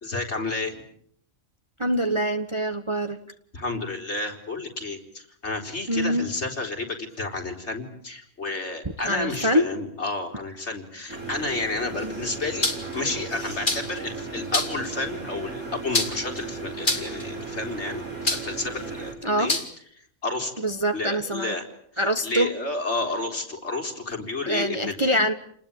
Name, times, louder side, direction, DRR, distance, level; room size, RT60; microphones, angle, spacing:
voice 1, 0.0-0.8 3.5-12.7 12.9-19.6 20.2-20.5 20.9-21.6 22.2-25.0, left 3 dB, 50° left, 3 dB, 4.3 m, -31 dB
voice 2, 1.8-3.2 5.9-6.3 9.0-9.7 12.0-12.1 19.2-19.5 20.6-21.5 22.0-22.5 24.5-25.3, equal, 20° right, 7 dB, 1.4 m, -24 dB
sound 1, 11.1-19.1, right 4 dB, 85° right, 5.1 m, -36 dB
sound 2, 12.6-13.0 13.7-14.0 14.5-14.9 15.9-16.4 16.8-17.2 18.3-18.6 19.5-19.7, left 2 dB, 35° left, 3.2 m, -25 dB
29.5 x 20.5 x 8.9 m, 0.67 s
omnidirectional pair, 1.5 m